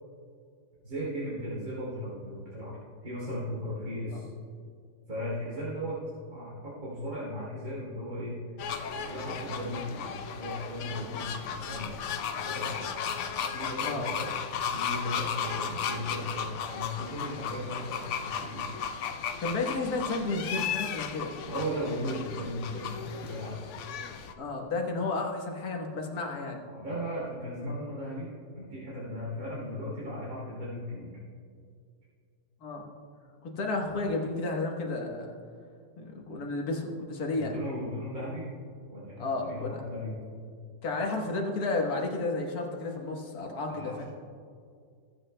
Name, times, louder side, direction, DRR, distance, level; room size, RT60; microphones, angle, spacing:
voice 1, 0.8-4.3 5.1-6.0 6.3-8.4 8.9-10.1 10.3-12.0 12.4-12.9 13.5-18.7 21.4-23.6 26.7-28.3 28.6-31.1 37.3-38.5 38.9-40.2 43.7-44.0, equal, 55° right, -8 dB, 3.4 m, -36 dB
sound 1, 8.6-24.3, left 7 dB, 90° left, 0.6 m, -35 dB
voice 2, 19.4-21.4 24.4-26.6 32.6-32.9 33.4-35.3 36.0-37.6 39.2-39.8 40.8-44.0, left 3 dB, 60° left, 0 dB, 1.7 m, -32 dB
21.0 x 8.0 x 2.2 m, 2.2 s
omnidirectional pair, 1.9 m